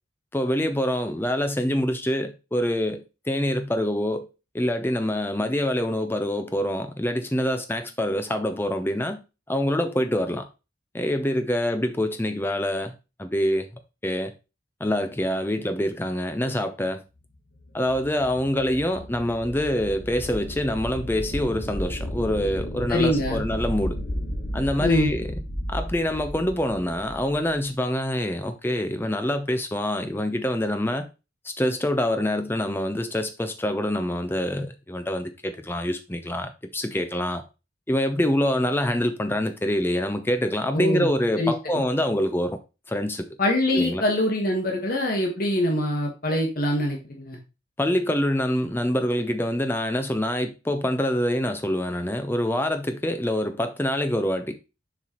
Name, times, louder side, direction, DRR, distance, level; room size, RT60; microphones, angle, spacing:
voice 1, 0.3-4.3 4.5-9.2 9.5-10.4 10.9-12.9 13.2-13.7 14.0-14.3 14.8-17.0 17.7-24.0 24.5-25.3 25.7-31.1 31.4-37.4 37.9-42.6 42.9-43.3 43.7-44.0 47.8-54.6, left 1 dB, 10° left, 0.6 m, -25 dB
sound 1, 17.5-27.6, equal, 70° left, 1.7 m, -33 dB
voice 2, 22.9-23.4 24.8-25.1 40.7-41.1 41.4-41.5 43.4-47.4, left 1 dB, 45° left, 1.3 m, -24 dB
7.1 x 4.6 x 3.0 m
head